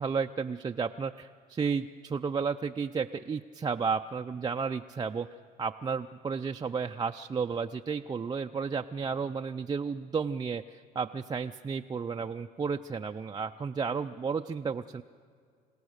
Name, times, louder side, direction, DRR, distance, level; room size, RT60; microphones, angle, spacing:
voice 1, 0.0-5.3 5.6-15.0, right 5 dB, 25° right, 4 dB, 0.4 m, -32 dB
28.0 x 17.0 x 6.5 m, 2.3 s
cardioid pair, 110°, 17 cm